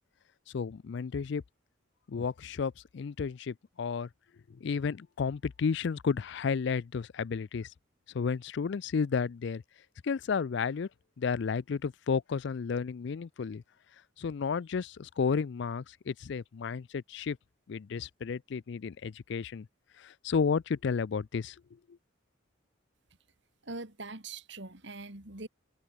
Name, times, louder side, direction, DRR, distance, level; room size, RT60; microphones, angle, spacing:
voice 1, 0.5-1.4 2.1-4.1 4.5-7.7 8.1-9.6 10.0-10.9 11.2-13.6 14.2-17.4 17.7-19.7 20.0-21.6, left 5 dB, 60° left, 0.4 m, -32 dB
voice 2, 23.6-25.5, right 3 dB, 60° right, 2.6 m, -42 dB
head